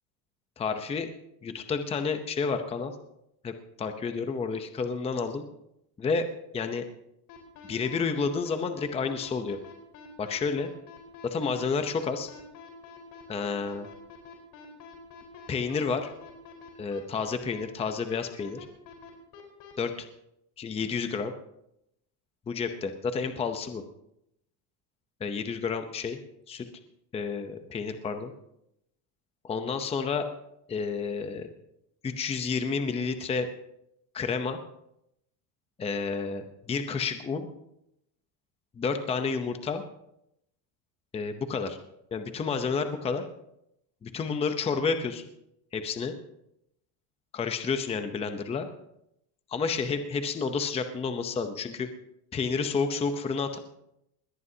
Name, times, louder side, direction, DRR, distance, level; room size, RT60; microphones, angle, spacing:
voice 1, 0.6-1.1 1.4-2.9 3.4-5.4 6.0-6.3 6.5-6.8 7.7-9.6 10.2-10.7 11.2-12.3 13.3-13.9 15.5-16.1 16.8-18.7 19.8-20.1 20.6-21.3 22.5-23.8 25.2-26.2 26.5-26.7 27.1-28.3 29.4-30.3 30.7-31.5 32.0-33.5 34.1-34.6 35.8-37.5 38.8-39.8 41.1-41.8 42.1-43.3 44.0-45.3 45.7-46.1 47.3-48.7 49.5-51.9 52.3-53.6, left 5 dB, 15° left, 7 dB, 0.7 m, -30 dB
sound 1, 7.3-19.7, left 7 dB, 50° left, 4.5 m, -47 dB
21.0 x 17.5 x 2.8 m, 0.80 s
cardioid pair, 160°, 47 cm